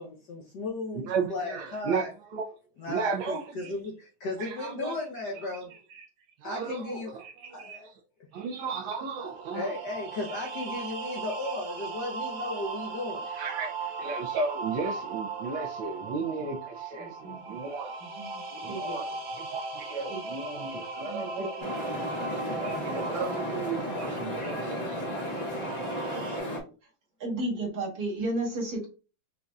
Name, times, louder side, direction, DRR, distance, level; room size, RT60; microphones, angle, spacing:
voice 1, 0.0-2.1 2.8-5.7 6.4-7.2 7.5-7.9 9.5-13.3, left 2 dB, 65° left, 0 dB, 1.1 m, -35 dB
voice 2, 1.1-2.0 2.3-2.4 2.9-3.7 4.4-4.9 5.4-5.5 5.7-6.1 6.4-7.9 8.3-9.7 10.4-10.5 13.3-18.0 18.6-19.1 19.4-21.7 22.6-25.1, right 4 dB, 75° right, 2 dB, 1.2 m, -35 dB
sound 1, 9.1-26.4, right 4 dB, 90° right, 1.9 m, -38 dB
voice 3, 17.0-17.6 18.0-19.0 20.1-20.2 20.7-21.5 27.2-28.9, right 2 dB, 50° right, -2 dB, 1.6 m, -34 dB
sound 2, 21.6-26.6, equal, 50° left, 0.5 m, -34 dB
5.2 x 2.5 x 2.3 m, 0.33 s
omnidirectional pair, 2.4 m